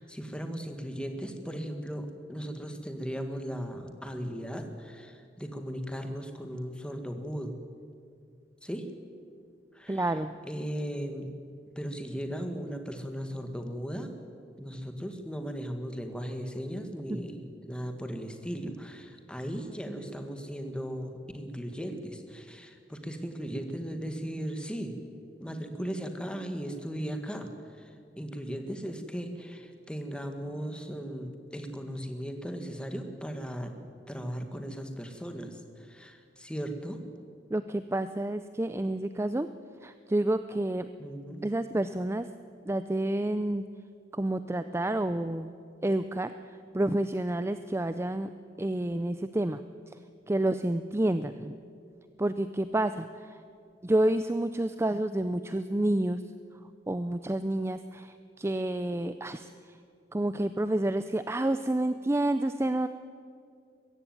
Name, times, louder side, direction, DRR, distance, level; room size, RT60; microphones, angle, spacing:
voice 1, 0.0-7.6 8.6-8.9 9.7-10.2 10.5-11.3 11.8-14.1 14.6-24.9 25.4-33.7 34.1-37.0 41.0-41.5, equal, 5° left, 6 dB, 1.8 m, -37 dB
voice 2, 9.9-10.3 17.1-17.2 37.5-39.5 39.8-40.9 41.4-42.3 42.7-43.6 44.1-45.5 45.8-46.3 46.7-48.3 48.6-49.6 50.3-51.5 52.2-53.3 53.8-56.2 56.9-59.5 60.1-62.9, right 1 dB, 15° right, 11 dB, 0.5 m, -29 dB
22.0 x 15.0 x 9.4 m, 2.4 s
head